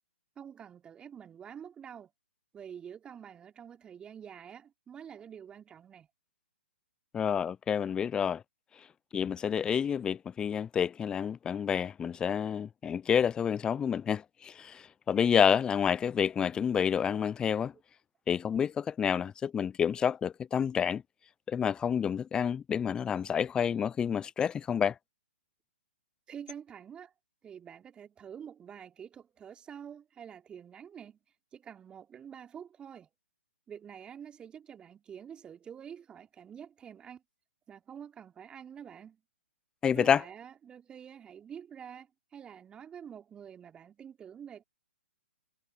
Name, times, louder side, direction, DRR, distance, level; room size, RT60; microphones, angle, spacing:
voice 1, 0.3-2.1 2.5-6.1 26.3-27.1 27.4-31.2 31.5-33.1 33.7-37.2 37.7-39.2 39.9-44.6, right 8 dB, 15° right, 3.4 m, -47 dB
voice 2, 7.1-8.4 9.1-17.7 18.3-21.0 21.5-24.9 39.8-40.2, left 7 dB, 10° left, 0.7 m, -29 dB
figure-of-eight pair, 125°, 6 cm